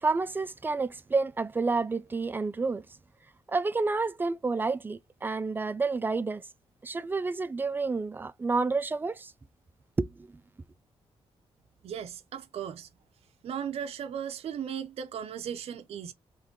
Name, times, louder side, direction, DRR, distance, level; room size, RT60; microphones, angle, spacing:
voice 1, 0.0-2.9 3.5-6.4 6.8-9.3 10.0-10.3, right 3 dB, 20° right, 0.4 m, -29 dB
voice 2, 11.8-12.9 13.4-16.1, right 8 dB, 70° right, 0.5 m, -36 dB
3.6 x 3.2 x 3.7 m
wide cardioid pair, 130°, 11 cm